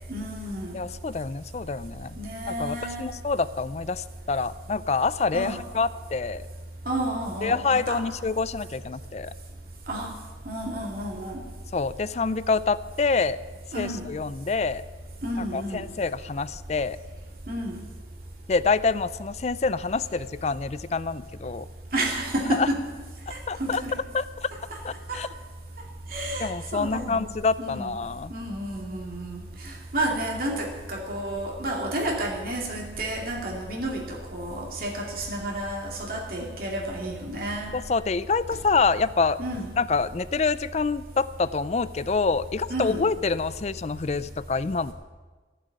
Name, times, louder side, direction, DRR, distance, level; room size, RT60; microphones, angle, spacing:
voice 1, 0.1-0.8 2.2-3.1 5.3-5.6 6.9-8.0 9.9-10.1 10.4-11.4 13.7-14.1 15.2-15.9 17.5-17.8 21.9-22.8 23.3-23.9 24.7-24.8 25.1-25.2 26.1-27.3 27.6-27.9 28.3-37.7 39.4-39.7 42.7-43.1, right 1 dB, 50° right, -1 dB, 2.5 m, -31 dB
voice 2, 0.7-2.2 2.5-6.5 7.4-9.3 11.7-13.4 13.7-14.8 15.4-17.0 18.5-21.7 22.5-22.7 23.5-23.8 24.1-24.5 24.8-25.3 26.4-28.3 37.7-39.4 39.8-44.9, left 4 dB, 35° left, 16 dB, 0.4 m, -26 dB
15.0 x 7.6 x 9.3 m, 1.4 s
head